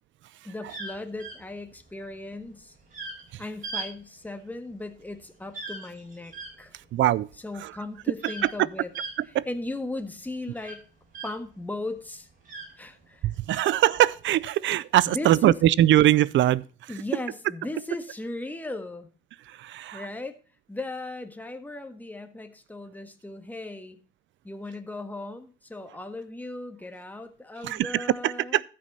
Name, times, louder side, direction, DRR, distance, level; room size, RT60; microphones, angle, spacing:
voice 1, 0.4-2.7 3.4-6.3 6.6-6.7 7.4-8.9 9.5-10.8 11.2-12.3 12.8-13.6 15.0-15.5 16.9-19.1 19.9-20.4 20.7-24.0 24.4-28.6, left 2 dB, 10° left, 1.5 m, -37 dB
sound 1, 0.7-11.6 12.0-13.3 14.0-14.4, right 3 dB, 45° right, 5.3 m, -40 dB
voice 2, 6.9-7.3 7.6-7.7 8.2-8.5 9.2-9.5 13.2-16.9 19.5-20.1 27.6-28.6, right 13 dB, 70° right, 0.5 m, -22 dB
13.5 x 6.3 x 4.1 m
cardioid pair, 90°, 20 cm